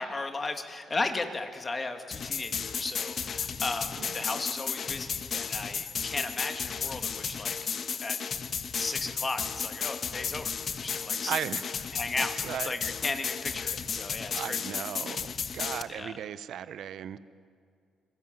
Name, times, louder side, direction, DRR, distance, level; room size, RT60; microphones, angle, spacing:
voice 1, 0.0-7.6 8.0-8.2 8.7-10.5 10.8-11.4 11.9-12.3 12.6-14.6 15.9-16.1, left 3 dB, 30° left, 6 dB, 2.6 m, -35 dB
sound 1, 2.1-15.8, left 6 dB, 50° left, 1.4 m, -34 dB
voice 2, 11.3-12.7 14.3-15.3 15.5-17.2, right 9 dB, 70° right, 14 dB, 1.0 m, -36 dB
29.5 x 21.0 x 9.3 m, 2.2 s
cardioid pair, 90°, 0 cm